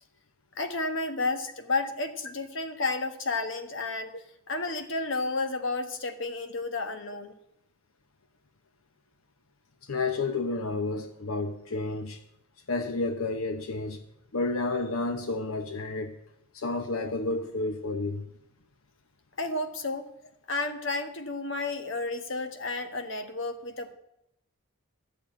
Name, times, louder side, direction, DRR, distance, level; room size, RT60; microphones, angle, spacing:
voice 1, 0.6-4.1 4.5-7.3 19.4-20.1 20.5-23.9, left 3 dB, 60° left, 1.3 m, -31 dB
voice 2, 9.9-12.2 12.7-14.0 14.3-16.1 16.5-18.2, left 3 dB, 80° left, 0.9 m, -30 dB
12.5 x 6.8 x 8.8 m
head